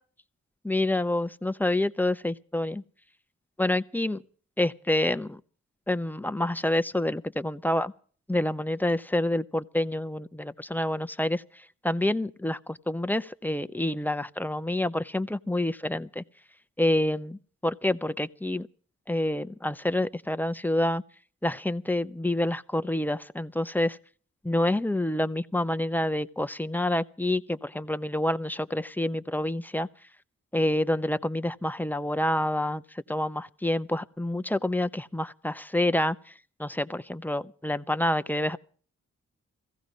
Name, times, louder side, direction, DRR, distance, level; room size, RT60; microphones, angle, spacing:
voice 1, 0.6-2.8 3.6-4.2 4.6-5.4 5.9-7.9 8.3-11.4 11.8-16.2 16.8-18.7 19.1-21.0 21.4-24.0 24.4-29.9 30.5-32.8 33.1-36.2 36.6-38.6, left 1 dB, 5° left, 0.9 m, -27 dB
16.5 x 15.5 x 5.3 m
cardioid pair, 50°, 30 cm